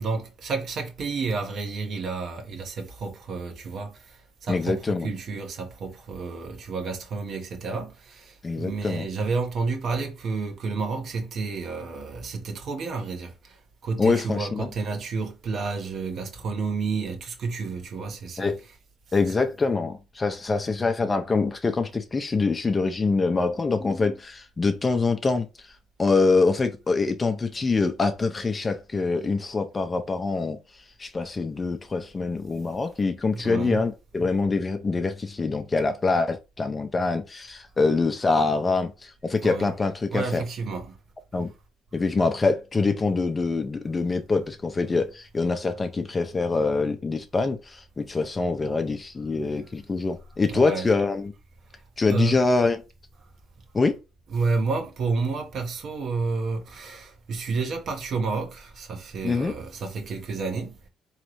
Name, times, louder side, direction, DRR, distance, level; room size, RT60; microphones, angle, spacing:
voice 1, 0.0-18.5 33.3-33.8 39.4-39.7 40.1-41.0 50.5-50.9 52.1-52.4 54.3-60.9, right 4 dB, 60° right, 1.2 m, -30 dB
voice 2, 4.5-5.1 8.4-9.1 14.0-14.7 18.4-18.6 19.1-25.5 26.0-30.6 31.0-40.4 41.3-41.5 41.9-51.3 52.0-52.8 53.7-54.0 59.2-59.5, left 3 dB, 30° left, 0.7 m, -25 dB
3.9 x 3.2 x 3.1 m
supercardioid pair, 70°, 0 cm